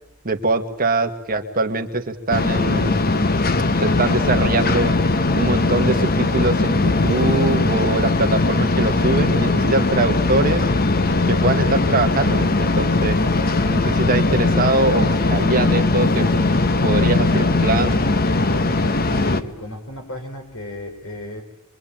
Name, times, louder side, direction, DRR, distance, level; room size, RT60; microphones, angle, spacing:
voice 1, 0.2-3.0 3.8-4.9 5.3-10.6 11.3-13.2 13.6-16.3 16.8-18.0, right 2 dB, 40° right, 6 dB, 1.8 m, -22 dB
sound 1, 2.3-19.4, left 2 dB, 45° left, 1.1 m, -19 dB
voice 2, 18.8-21.4, left 1 dB, 75° left, 5 dB, 5.4 m, -35 dB
26.0 x 24.0 x 9.0 m, 0.80 s
head